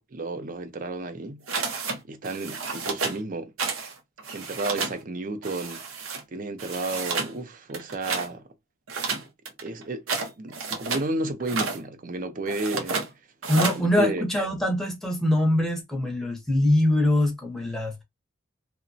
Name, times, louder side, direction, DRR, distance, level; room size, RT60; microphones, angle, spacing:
voice 1, 0.1-1.4 2.1-3.5 4.3-5.8 6.3-8.5 9.6-10.1 10.4-13.0 13.7-14.3, right 2 dB, 40° right, 0.5 m, -32 dB
sound 1, 1.5-2.0 2.2-3.2 3.6-3.9 4.2-5.0 5.4-6.2 6.6-7.3 7.7-8.3 8.9-11.1 11.4-11.8 12.5-13.1 13.4-13.8, right 4 dB, 85° right, 0.7 m, -30 dB
voice 2, 13.5-18.0, left 1 dB, ahead, 0.7 m, -23 dB
2.8 x 2.1 x 2.5 m
head